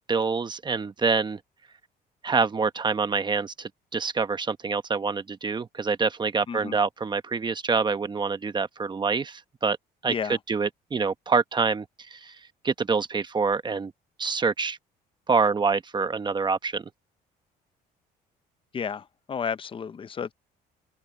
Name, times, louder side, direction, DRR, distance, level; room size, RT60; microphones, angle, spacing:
voice 1, 0.1-1.4 2.2-9.8 10.0-10.1 10.5-12.3 12.6-13.9 14.2-14.8 15.3-16.9, right 4 dB, 25° right, 1.0 m, -26 dB
voice 2, 10.1-10.4 18.7-20.3, left 6 dB, 30° left, 0.8 m, -32 dB
cardioid pair, 110°, 17 cm